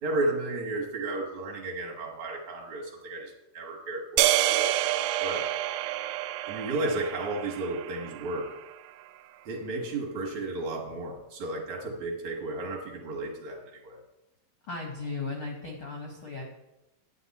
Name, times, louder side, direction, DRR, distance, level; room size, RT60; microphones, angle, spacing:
voice 1, 0.0-4.8 5.2-5.5 6.5-8.5 9.5-14.0, right 2 dB, 60° right, 0 dB, 2.3 m, -33 dB
sound 1, 4.2-8.5, right 13 dB, 85° right, 2.4 m, -28 dB
voice 2, 14.7-16.4, left 3 dB, 70° left, 0 dB, 1.2 m, -36 dB
9.7 x 9.1 x 4.1 m, 0.95 s
omnidirectional pair, 4.3 m